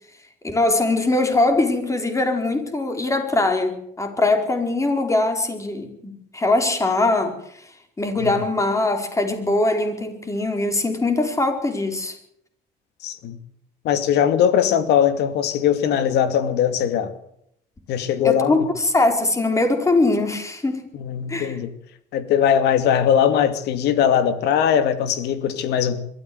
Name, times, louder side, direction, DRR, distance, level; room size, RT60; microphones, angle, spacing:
voice 1, 0.4-7.7 8.0-12.2 18.2-20.8 21.3-21.6, left 2 dB, 20° left, 4.8 m, -21 dB
voice 2, 13.0-13.4 13.8-17.1 17.9-18.7 20.9-21.7 22.1-26.0, left 9 dB, 80° left, 2.5 m, -20 dB
22.5 x 14.0 x 8.0 m
cardioid pair, 110°, 17 cm